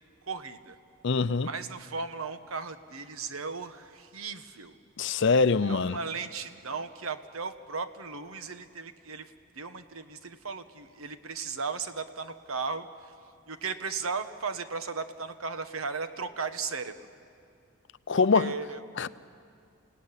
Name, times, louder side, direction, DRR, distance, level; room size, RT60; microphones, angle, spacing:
voice 1, 0.2-0.8 1.4-4.8 5.6-13.1 13.5-17.0 18.1-18.8, right 4 dB, 80° right, 1.2 m, -36 dB
voice 2, 1.0-1.5 5.0-6.0 18.1-18.5 19.0-19.1, left 4 dB, 60° left, 0.6 m, -24 dB
29.5 x 17.5 x 10.0 m
head